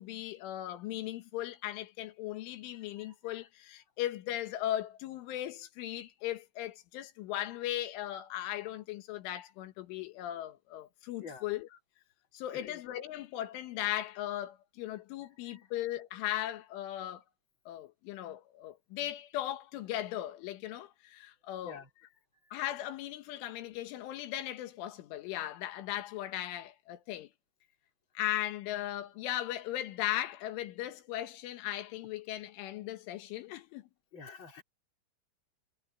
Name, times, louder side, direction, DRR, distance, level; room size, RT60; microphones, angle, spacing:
voice 1, 0.0-11.8 12.3-17.2 17.7-21.8 22.5-27.3 28.2-33.9, left 13 dB, 85° left, 4.0 m, -38 dB
voice 2, 34.1-34.6, left 5 dB, 25° left, 5.1 m, -48 dB
omnidirectional pair, 5.5 m